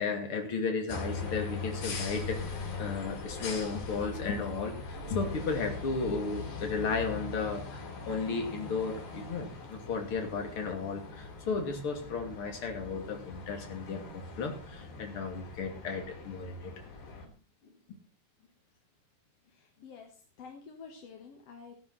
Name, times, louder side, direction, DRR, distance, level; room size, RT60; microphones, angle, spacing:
voice 1, 0.0-16.7, left 4 dB, 35° left, 3 dB, 2.7 m, -34 dB
sound 1, 0.9-17.3, left 4 dB, 75° left, 5.7 m, -41 dB
voice 2, 19.5-21.7, left 5 dB, 55° left, 3 dB, 1.8 m, -49 dB
16.0 x 10.5 x 4.1 m, 0.35 s
omnidirectional pair, 5.0 m